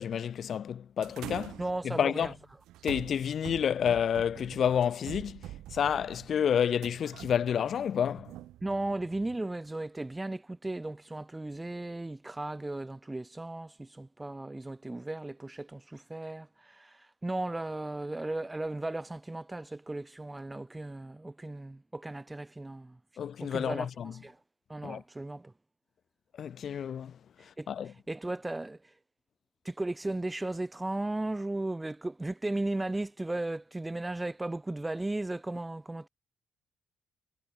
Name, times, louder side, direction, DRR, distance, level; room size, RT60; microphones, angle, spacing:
voice 1, 0.0-2.3 2.8-8.3 23.2-24.1 24.8-25.0 26.4-27.2 27.7-27.9, left 8 dB, 60° left, 0.9 m, -30 dB
sound 1, 1.0-9.4, right 14 dB, 85° right, 1.4 m, -46 dB
voice 2, 1.6-2.3 8.6-23.0 23.4-24.4 24.7-25.5 27.6-27.7 28.1-28.9 29.6-36.1, right 2 dB, 15° right, 1.1 m, -36 dB
cardioid pair, 90°, 0 cm